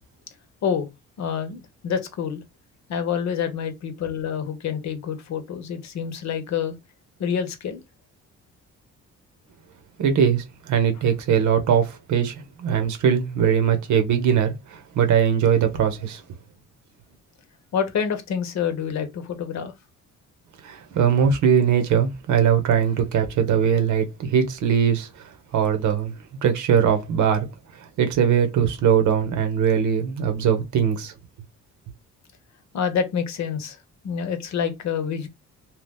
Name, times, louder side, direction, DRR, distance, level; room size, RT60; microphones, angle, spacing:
voice 1, 1.2-2.4 2.9-6.8 7.2-7.8 17.7-19.7 32.7-33.8 34.0-35.3, left 7 dB, 65° left, 0.8 m, -27 dB
voice 2, 10.0-16.2 20.6-25.2 25.5-26.1 26.4-27.5 28.0-31.1, right 8 dB, 75° right, 0.9 m, -21 dB
2.9 x 2.3 x 3.5 m
cardioid pair, 90°, 30 cm